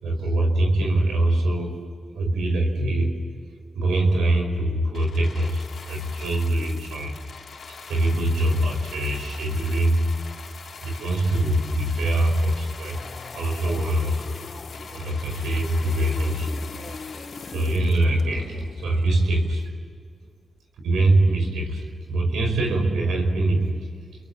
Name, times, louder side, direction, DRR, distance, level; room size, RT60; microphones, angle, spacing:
voice 1, 0.0-1.8 2.1-3.2 3.8-7.2 7.7-10.1 10.8-13.0 13.3-14.2 14.9-19.7 20.8-23.9, right 1 dB, 85° right, 3 dB, 5.2 m, -23 dB
sound 1, 4.9-18.6 19.4-19.5, left 5 dB, 65° left, 3.7 m, -42 dB
sound 2, 12.9-19.7, left 4 dB, 50° left, 1.3 m, -41 dB
30.0 x 22.5 x 7.5 m, 2.1 s
supercardioid pair, 50°, 0 cm